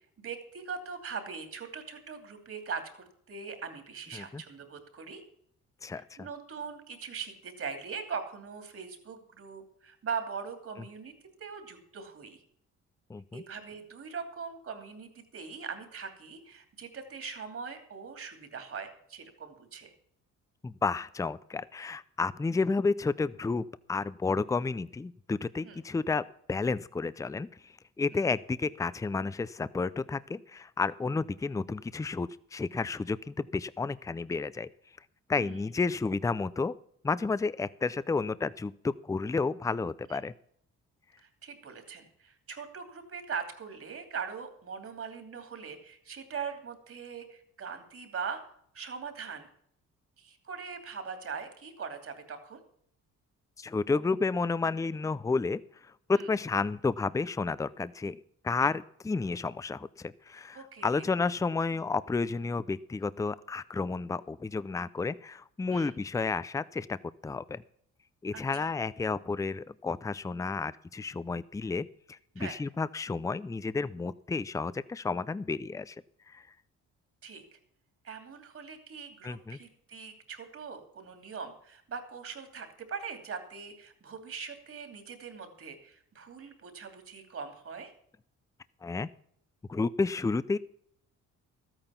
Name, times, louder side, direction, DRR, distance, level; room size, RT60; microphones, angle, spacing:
voice 1, 0.2-5.2 5.9-11.1 11.4-12.4 13.3-19.9 25.6-25.8 28.1-28.2 35.4-35.7 40.1-40.2 41.2-48.4 48.7-49.5 50.2-52.6 56.1-56.3 60.5-61.0 65.7-65.9 68.3-68.7 72.4-72.6 77.2-77.6 78.0-87.9, right 6 dB, 50° right, 6 dB, 2.9 m, -41 dB
voice 2, 5.8-6.3 13.1-13.4 20.6-27.5 28.0-34.7 35.3-36.7 37.0-40.3 53.6-55.6 56.1-58.2 58.4-67.0 67.2-67.6 68.2-75.9 76.3-76.4 79.2-79.6 88.8-89.1 89.7-90.6, left 4 dB, 10° left, 17 dB, 0.5 m, -31 dB
13.0 x 9.0 x 5.8 m, 0.66 s
cardioid pair, 90°, 30 cm